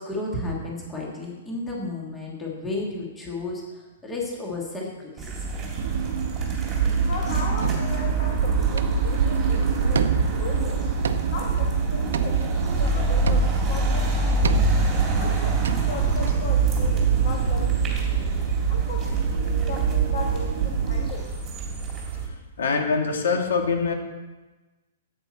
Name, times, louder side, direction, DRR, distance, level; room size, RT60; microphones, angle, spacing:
voice 1, 0.0-5.5, left 2 dB, 5° left, -3 dB, 1.6 m, -32 dB
sound 1, 5.2-22.3, right 3 dB, 10° right, 2.1 m, -27 dB
sound 2, 5.8-21.1, right 5 dB, 55° right, 1.2 m, -25 dB
voice 2, 7.1-10.9 11.3-14.6 15.2-18.3 18.7-21.3, left 4 dB, 40° left, 1 dB, 1.3 m, -37 dB
sound 3, 7.6-8.2 8.8-9.2 9.5-9.6 9.9-10.6 11.0-11.6 12.1-12.9 13.3-13.8 14.4-15.0 15.3-15.4 15.6-16.3, right 6 dB, 80° right, 0.8 m, -31 dB
voice 3, 22.6-23.9, left 5 dB, 80° left, 3 dB, 2.0 m, -24 dB
15.0 x 8.8 x 4.3 m, 1.2 s
hypercardioid pair, 180°, 0 cm